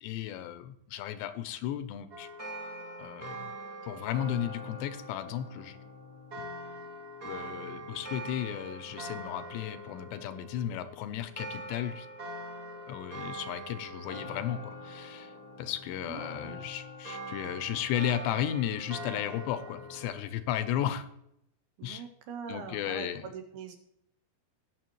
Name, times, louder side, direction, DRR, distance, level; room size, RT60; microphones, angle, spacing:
voice 1, 0.0-2.3 3.0-3.5 3.8-5.8 7.2-12.1 12.9-15.3 15.6-21.1 21.8-22.0 22.5-23.3, left 11 dB, 80° left, 11 dB, 2.8 m, -34 dB
sound 1, 2.1-20.1, equal, 35° right, 1.4 m, -43 dB
voice 2, 16.0-16.6 21.8-23.8, right 7 dB, 75° right, 5 dB, 2.5 m, -42 dB
18.5 x 6.9 x 3.0 m, 0.77 s
omnidirectional pair, 5.2 m